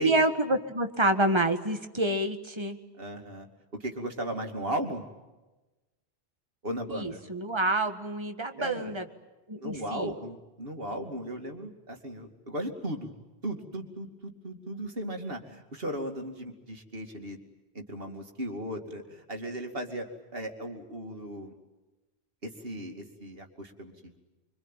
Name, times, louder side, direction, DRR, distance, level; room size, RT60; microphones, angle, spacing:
voice 1, 0.0-2.8 6.9-9.1 9.5-10.1, right 2 dB, 25° right, 7 dB, 1.7 m, -27 dB
voice 2, 3.0-3.5 3.8-5.0 6.6-7.2 8.6-8.9 9.6-13.1 13.4-17.4 17.7-21.5 22.4-24.2, right 1 dB, 65° right, 4 dB, 2.9 m, -36 dB
25.5 x 24.5 x 9.1 m, 1.1 s
omnidirectional pair, 1.1 m